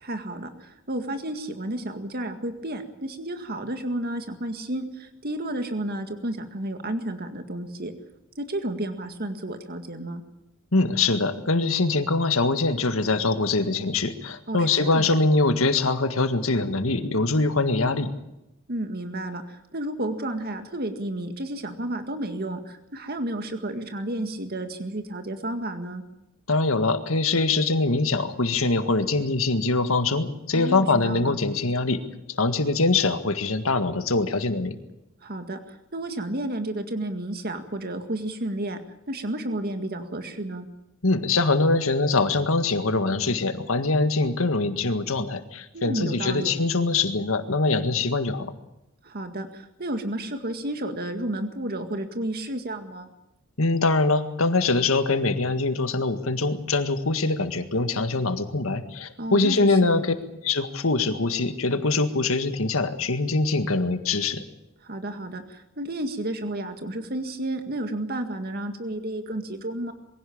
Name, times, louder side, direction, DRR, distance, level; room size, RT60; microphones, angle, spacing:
voice 1, 0.0-7.9 8.4-10.2 14.5-15.1 18.7-26.0 30.5-31.3 35.2-38.8 39.1-40.7 45.7-46.5 49.0-53.1 59.2-60.0 64.8-69.9, right 1 dB, 50° right, 7 dB, 2.0 m, -31 dB
voice 2, 10.7-18.1 26.5-32.0 32.3-34.8 41.0-48.5 53.6-60.1 60.4-64.4, left 3 dB, 90° left, 9 dB, 1.8 m, -23 dB
23.0 x 16.5 x 8.7 m, 0.89 s
head